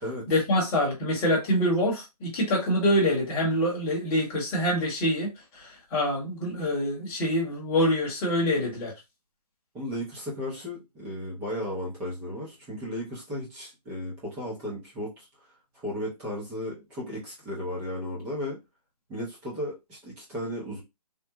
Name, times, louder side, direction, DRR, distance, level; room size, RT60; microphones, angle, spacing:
voice 1, 0.3-8.9, equal, 10° left, 0.9 m, -25 dB
voice 2, 9.7-15.3 15.7-18.6 19.1-20.8, left 1 dB, 5° right, 0.5 m, -35 dB
3.5 x 2.0 x 2.8 m
hypercardioid pair, 165°, 20 cm